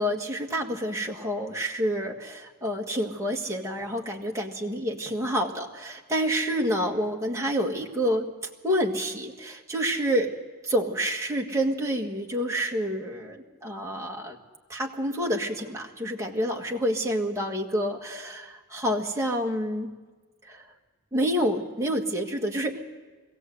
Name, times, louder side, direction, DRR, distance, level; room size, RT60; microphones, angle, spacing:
voice 1, 0.0-8.3 8.6-10.3 10.6-14.4 14.7-19.9 20.5-20.6 21.1-22.8, equal, 15° right, 0 dB, 1.8 m, -28 dB
22.0 x 16.5 x 8.0 m, 1.3 s
head